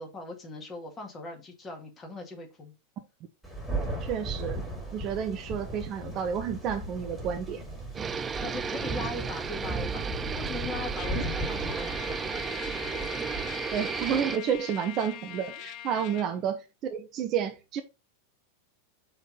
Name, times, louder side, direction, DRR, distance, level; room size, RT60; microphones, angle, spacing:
voice 1, 0.0-2.7 8.4-10.1 10.4-12.9 15.9-16.1, left 2 dB, 20° left, 1.8 m, -40 dB
Thunder, 3.4-14.2, right 1 dB, ahead, 2.3 m, -37 dB
voice 2, 4.0-4.6 4.9-7.6 11.1-11.2 13.7-17.8, right 8 dB, 35° right, 0.8 m, -30 dB
sound 1, 7.9-14.4, right 6 dB, 20° right, 0.4 m, -33 dB
Trumpet, 11.0-16.3, left 12 dB, 40° left, 0.4 m, -42 dB
5.5 x 3.6 x 5.5 m
figure-of-eight pair, 90°, 0 cm